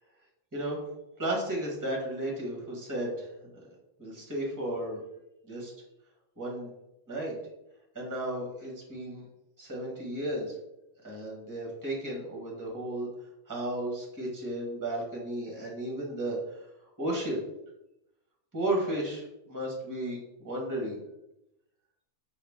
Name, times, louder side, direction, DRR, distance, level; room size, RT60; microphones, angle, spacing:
voice 1, 1.2-3.3 3.5-3.6 4.0-5.0 5.4-5.7 6.4-6.7 7.1-7.4 7.9-9.3 9.6-10.5 11.0-13.1 13.5-17.4 18.5-21.0, right 1 dB, 15° right, -2 dB, 1.1 m, -34 dB
5.6 x 2.5 x 3.4 m, 0.87 s
omnidirectional pair, 1.2 m